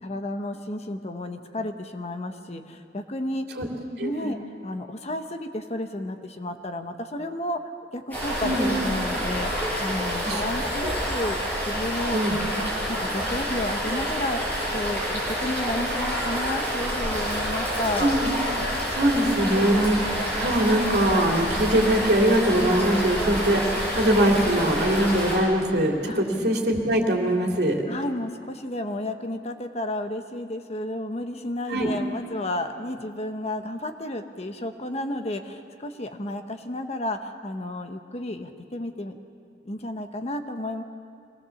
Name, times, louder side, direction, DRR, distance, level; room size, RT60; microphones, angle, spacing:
voice 1, 0.0-3.5 4.0-7.6 7.9-11.4 11.6-12.2 12.5-18.1 26.1-26.2 27.9-39.2 39.6-40.8, left 1 dB, 35° left, 6 dB, 1.1 m, -32 dB
voice 2, 4.0-4.3 8.4-8.7 10.2-10.4 10.8-10.9 12.1-12.4 18.0-18.3 18.9-27.8 31.7-31.9, right 1 dB, 65° right, 0 dB, 2.9 m, -22 dB
sound 1, 8.1-25.4, equal, 10° left, 7.3 m, -28 dB
25.0 x 18.5 x 7.1 m, 2.3 s
head